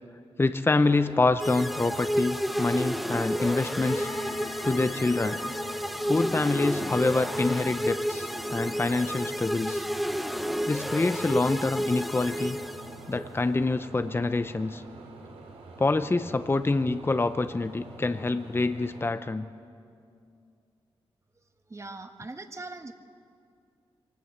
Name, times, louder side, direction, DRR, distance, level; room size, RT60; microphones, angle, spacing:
voice 1, 0.4-4.1 4.6-5.4 6.1-9.8 10.7-12.6 13.1-14.8 15.8-19.5, left 3 dB, 25° left, 10 dB, 0.7 m, -26 dB
sound 1, 0.8-19.1, right 3 dB, 85° right, 2.9 m, -46 dB
sound 2, 1.4-13.2, equal, ahead, 0.9 m, -31 dB
sound 3, 2.5-17.7 17.9-18.7 19.0-19.7 20.1-20.5, left 5 dB, 80° left, 2.4 m, -48 dB
voice 2, 21.7-22.9, right 2 dB, 30° right, 6 dB, 1.6 m, -40 dB
23.5 x 19.0 x 8.0 m, 2.4 s
cardioid pair, 65°, 10 cm